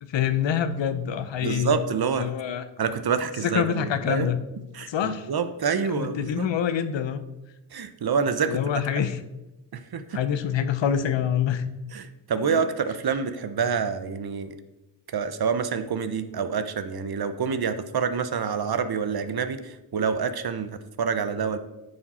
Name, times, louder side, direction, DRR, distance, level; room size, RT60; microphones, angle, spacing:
voice 1, 0.0-1.8 2.1-2.6 3.4-4.4 4.9-5.3 5.8-7.2 8.4-9.2 10.1-11.6 12.4-12.6, left 9 dB, 70° left, 11 dB, 0.7 m, -26 dB
voice 2, 1.4-2.3 2.8-4.3 4.7-6.5 7.7-8.6 9.7-10.2 11.9-14.6 15.1-21.6, right 6 dB, 55° right, 11 dB, 0.8 m, -27 dB
9.4 x 4.9 x 4.2 m, 0.97 s
cardioid pair, 50°, 45 cm